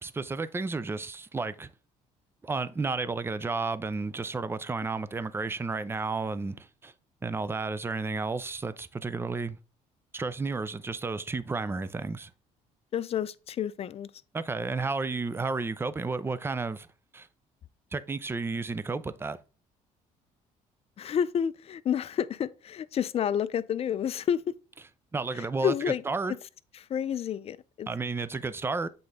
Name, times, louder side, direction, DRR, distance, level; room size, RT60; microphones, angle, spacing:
voice 1, 0.0-1.7 2.4-6.9 7.2-9.6 10.1-12.3 14.3-16.9 17.1-17.3 17.9-19.4 25.1-25.7 26.1-26.4 27.9-28.9, right 3 dB, 15° right, 0.5 m, -32 dB
voice 2, 12.9-14.1 21.0-24.5 25.3-26.0 26.9-27.9, left 8 dB, 45° left, 0.5 m, -29 dB
7.8 x 3.9 x 3.5 m
cardioid pair, 100°, 15 cm